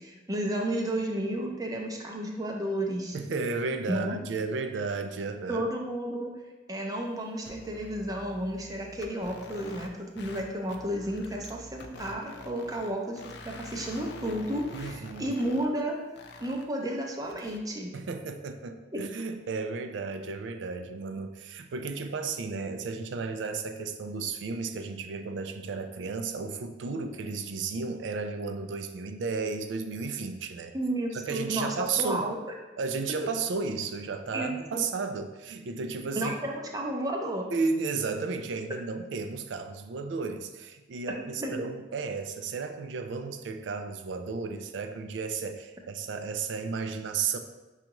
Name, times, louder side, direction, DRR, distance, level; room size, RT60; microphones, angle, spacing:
voice 1, 0.0-3.2 3.9-4.2 5.5-6.3 6.7-16.0 16.4-17.9 18.9-19.0 30.7-32.4 34.3-34.8 36.2-37.5 41.4-41.5, right 1 dB, 20° right, 0 dB, 0.5 m, -32 dB
voice 2, 3.1-5.6 14.7-15.4 17.9-30.8 31.1-32.3 32.8-36.4 37.5-47.4, right 4 dB, 75° right, 7 dB, 0.4 m, -33 dB
sound 1, 7.4-9.9 10.2-10.4 10.7-12.9 13.2-15.8 16.2-16.6 17.2-17.6, left 2 dB, 60° left, 0.4 m, -46 dB
6.4 x 2.4 x 2.9 m, 1.1 s
head